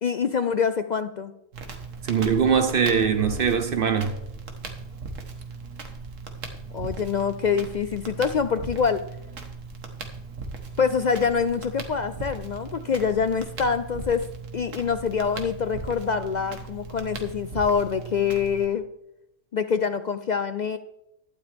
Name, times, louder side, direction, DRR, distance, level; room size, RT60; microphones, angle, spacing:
voice 1, 0.0-1.3 6.7-9.0 10.8-14.2 14.5-18.8 19.5-20.8, left 6 dB, 70° left, 0.4 m, -25 dB
Crackle, 1.5-18.6, right 4 dB, 75° right, 1.7 m, -38 dB
voice 2, 2.0-4.1, right 6 dB, 50° right, 0.9 m, -22 dB
12.0 x 11.0 x 3.5 m
omnidirectional pair, 1.3 m